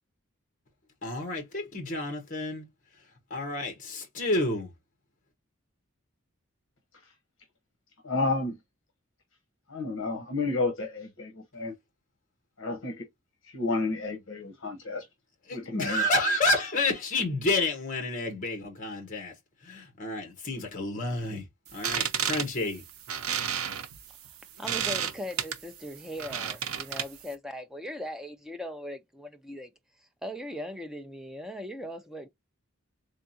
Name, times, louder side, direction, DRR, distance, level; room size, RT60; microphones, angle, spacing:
voice 1, 1.0-2.7 3.3-4.7 15.5-19.3 19.6-21.4 21.7-22.8, left 2 dB, 40° left, 1.2 m, -29 dB
voice 2, 8.0-8.6 9.7-11.7 12.6-13.0 13.4-15.0 15.5-16.1, left 3 dB, 65° left, 1.0 m, -31 dB
sound 1, 21.7-27.3, right 8 dB, 90° right, 0.6 m, -32 dB
voice 3, 24.6-29.7 30.2-32.3, equal, ahead, 0.5 m, -39 dB
3.6 x 3.5 x 2.7 m
head